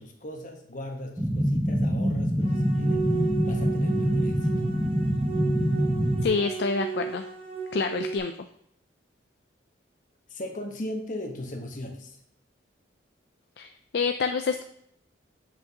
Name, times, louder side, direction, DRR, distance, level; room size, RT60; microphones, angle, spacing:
voice 1, 0.0-3.1 3.4-4.5 10.3-12.2, left 1 dB, 45° left, 3 dB, 1.1 m, -38 dB
sound 1, 1.2-6.3, equal, 5° right, 0.6 m, -25 dB
sound 2, 2.4-8.2, right 5 dB, 30° right, 1.3 m, -34 dB
voice 2, 6.2-7.2 7.7-8.3 13.6-14.6, left 4 dB, 60° left, 7 dB, 0.4 m, -27 dB
7.7 x 6.0 x 2.9 m, 0.71 s
head